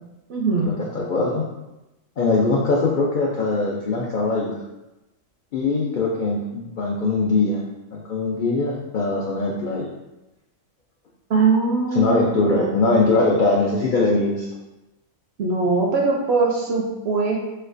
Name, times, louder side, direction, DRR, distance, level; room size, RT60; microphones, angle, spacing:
voice 1, 0.3-0.7 11.3-12.7 15.4-17.4, right 4 dB, 65° right, -1 dB, 0.7 m, -21 dB
voice 2, 0.9-1.4 2.2-4.6 5.5-7.6 7.9-9.9 11.9-14.5, left 3 dB, 75° left, -3 dB, 0.4 m, -21 dB
4.2 x 2.3 x 2.5 m, 0.98 s
omnidirectional pair, 1.4 m